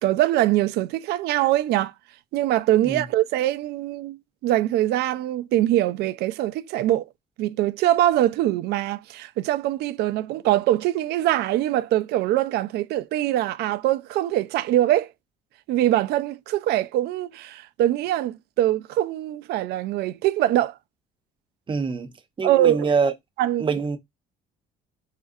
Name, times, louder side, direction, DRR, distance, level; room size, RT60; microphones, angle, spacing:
voice 1, 0.0-1.9 2.3-4.2 4.4-7.0 7.4-15.1 15.7-20.8 22.4-22.9 23.4-23.6, right 13 dB, 75° right, 0.4 m, -23 dB
voice 2, 21.7-22.1 22.4-23.1 23.6-24.0, right 5 dB, 30° right, 0.7 m, -24 dB
4.2 x 2.4 x 2.6 m
cardioid pair, 110°, 17 cm